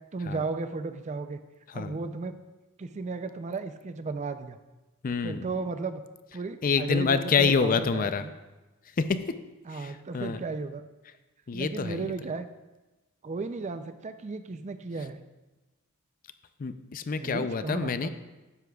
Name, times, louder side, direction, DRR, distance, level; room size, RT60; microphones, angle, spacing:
voice 1, 0.1-1.4 1.7-2.4 2.8-4.6 5.2-6.0 6.3-8.3 9.7-10.8 11.5-12.5 13.2-15.2 17.2-18.1, right 3 dB, 35° right, 10 dB, 0.4 m, -34 dB
voice 2, 5.0-5.5 6.6-8.2 9.0-9.2 9.7-10.4 11.5-12.1 16.6-18.1, left 5 dB, 40° left, 11 dB, 0.4 m, -27 dB
12.5 x 9.8 x 2.3 m, 1.1 s
head